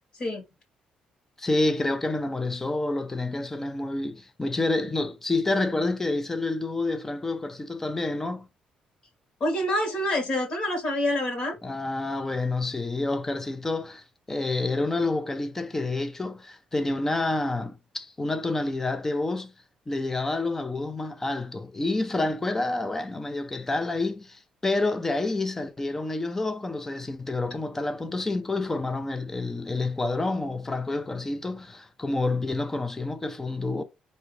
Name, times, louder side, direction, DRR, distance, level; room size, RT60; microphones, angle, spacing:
voice 1, 1.4-8.5 11.6-19.5 19.9-33.8, left 2 dB, 15° left, 0.5 m, -28 dB
voice 2, 9.4-11.5, left 1 dB, 45° left, 1.6 m, -26 dB
4.6 x 2.7 x 3.2 m
cardioid pair, 140°, 3 cm